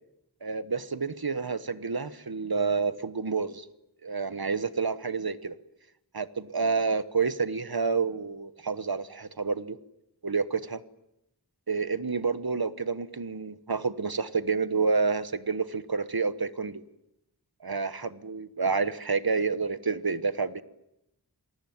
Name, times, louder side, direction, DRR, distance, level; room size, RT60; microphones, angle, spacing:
voice 1, 0.4-3.7 4.0-5.5 6.1-9.8 10.2-10.8 11.7-16.8 17.6-20.6, right 4 dB, 70° right, 14 dB, 1.3 m, -29 dB
27.5 x 19.5 x 9.5 m, 0.85 s
wide cardioid pair, 45°, 38 cm